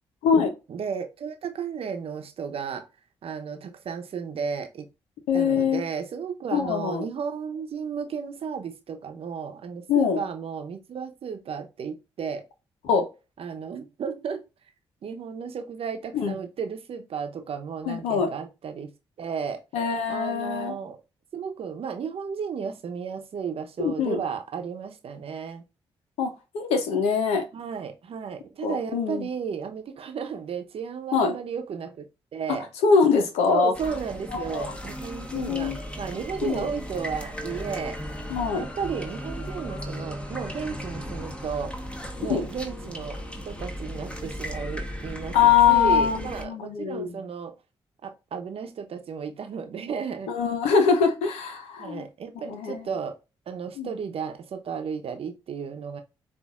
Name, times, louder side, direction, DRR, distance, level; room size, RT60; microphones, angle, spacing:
voice 1, 0.7-2.9 3.2-4.9 5.3-12.5 13.4-14.4 15.0-18.9 19.2-19.6 20.1-21.0 21.3-25.6 27.5-32.1 32.3-32.7 33.5-38.0 38.6-41.7 42.2-47.5 48.0-50.3 51.8-53.2 53.5-56.0, right 6 dB, 65° right, 0.8 m, -33 dB
voice 2, 5.3-5.8 6.5-7.1 9.9-10.2 12.8-13.1 16.1-16.4 17.8-18.3 19.7-20.8 23.8-24.2 26.2-27.4 28.6-29.3 31.1-31.3 32.5-32.6 32.8-33.7 34.3-34.7 35.3-35.8 36.4-36.7 38.3-38.7 42.3-42.5 45.3-47.1 50.3-52.1 52.4-52.8 53.8-53.9, left 6 dB, 85° left, 0.9 m, -23 dB
sound 1, 33.7-46.4, equal, 10° left, 1.2 m, -36 dB
7.0 x 2.7 x 2.4 m
hypercardioid pair, 45°, 11 cm